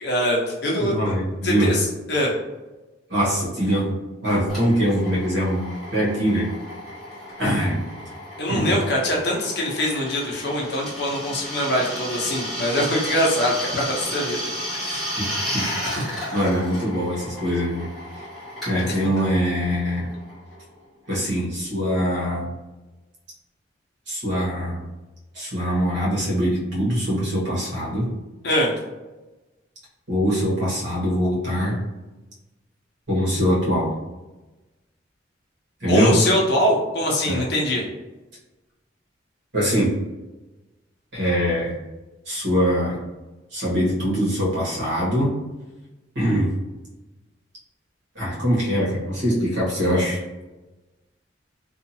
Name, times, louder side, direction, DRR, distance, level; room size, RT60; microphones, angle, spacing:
voice 1, 0.0-0.9 1.4-2.3 8.4-14.4 14.8-15.1 15.9-16.0 28.4-28.7 35.9-37.8, equal, 55° left, -2 dB, 0.7 m, -23 dB
voice 2, 0.8-1.7 3.1-4.0 4.2-6.5 7.4-7.8 8.5-8.8 15.2-15.7 16.3-17.9 18.6-20.1 21.1-22.5 24.1-24.8 25.3-28.1 30.1-31.8 33.1-33.9 35.8-36.1 37.3-37.5 39.5-39.9 41.1-41.8 42.3-43.0 43.5-45.3 46.1-46.5 48.1-50.2, equal, 65° right, -6 dB, 1.3 m, -23 dB
Drill, 4.5-20.8, equal, ahead, 1.2 m, -33 dB
2.7 x 2.5 x 2.7 m, 1.1 s
head